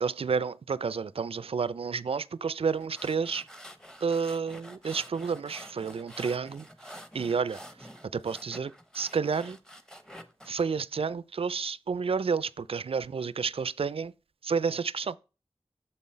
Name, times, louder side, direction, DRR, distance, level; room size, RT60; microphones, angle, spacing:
voice 1, 0.0-3.5 4.0-9.6 10.5-14.1 14.4-15.2, right 5 dB, 75° right, 0.4 m, -30 dB
sound 1, 2.7-10.6, equal, 5° left, 0.9 m, -48 dB
6.8 x 5.5 x 4.3 m
wide cardioid pair, 50°, 10 cm